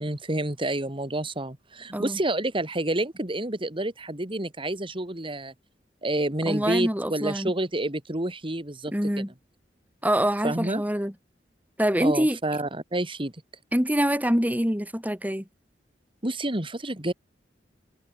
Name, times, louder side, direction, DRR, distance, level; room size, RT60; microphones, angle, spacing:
voice 1, 0.0-5.5 6.0-9.2 10.4-10.8 12.0-13.3 16.2-17.1, right 1 dB, 30° right, 2.7 m, -29 dB
voice 2, 6.4-7.5 8.9-9.3 10.0-11.1 11.8-12.4 13.7-15.4, equal, 10° right, 4.9 m, -25 dB
head